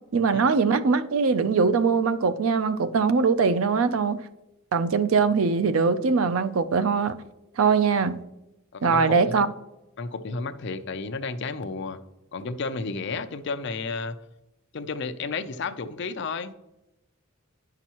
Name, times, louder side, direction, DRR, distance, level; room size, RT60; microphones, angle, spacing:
voice 1, 0.1-4.2 4.7-7.1 7.6-8.2 8.8-9.5, right 5 dB, 85° right, 0.5 m, -22 dB
voice 2, 8.7-9.4 10.0-12.0 12.3-14.2 14.7-16.5, left 4 dB, 60° left, 0.5 m, -32 dB
9.9 x 5.8 x 2.9 m
head